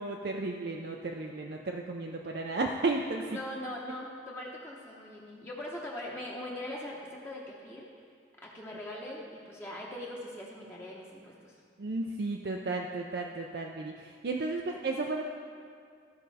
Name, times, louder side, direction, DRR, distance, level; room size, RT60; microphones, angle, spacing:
voice 1, 0.0-3.2 11.8-15.3, right 3 dB, 60° right, 1 dB, 0.5 m, -33 dB
voice 2, 3.3-8.1 8.4-11.6, left 1 dB, 15° left, -4 dB, 0.9 m, -41 dB
14.5 x 5.2 x 4.1 m, 2.3 s
head